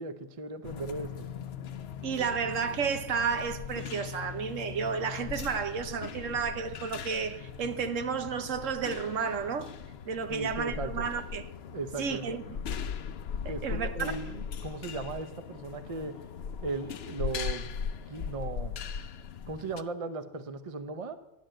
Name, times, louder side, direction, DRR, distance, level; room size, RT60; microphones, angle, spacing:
voice 1, 0.0-1.3 2.1-2.4 10.3-11.1 11.7-12.3 13.5-16.1 16.6-17.7 18.1-18.8 19.5-21.2, right 3 dB, 30° right, 0.7 m, -37 dB
sound 1, 0.6-19.8, left 7 dB, 60° left, 0.8 m, -39 dB
voice 2, 2.0-9.7 10.1-11.4 12.0-12.6 13.4-14.1, right 6 dB, 75° right, 1.3 m, -32 dB
13.5 x 10.0 x 7.7 m
omnidirectional pair, 1.3 m